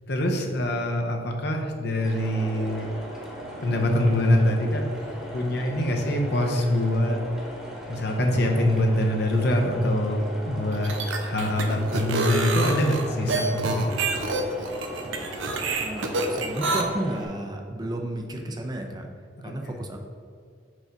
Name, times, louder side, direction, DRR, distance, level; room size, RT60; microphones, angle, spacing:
voice 1, 0.1-2.9 3.6-4.9 5.3-7.2 7.9-11.0 11.2-14.0 19.4-19.8, left 1 dB, 60° left, 2 dB, 0.8 m, -24 dB
sound 1, 2.0-17.3, equal, ahead, 1.1 m, -38 dB
sound 2, 10.7-16.8, right 3 dB, 90° right, 0.7 m, -27 dB
voice 2, 15.8-19.1 19.4-20.0, right 1 dB, 20° right, 3 dB, 0.5 m, -33 dB
4.8 x 3.9 x 5.6 m, 2.2 s
head